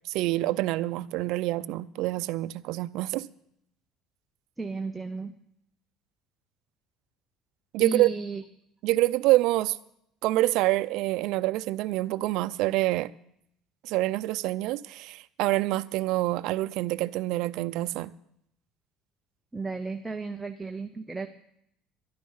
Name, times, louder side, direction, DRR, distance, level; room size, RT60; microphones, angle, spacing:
voice 1, 0.0-3.3 7.7-8.1 8.8-9.8 10.2-13.1 13.8-18.1, right 17 dB, 65° right, 0.6 m, -26 dB
voice 2, 4.6-5.3 7.8-8.4 19.5-21.3, right 4 dB, 5° right, 0.7 m, -33 dB
12.5 x 11.5 x 5.6 m
cardioid pair, 150°, 0 cm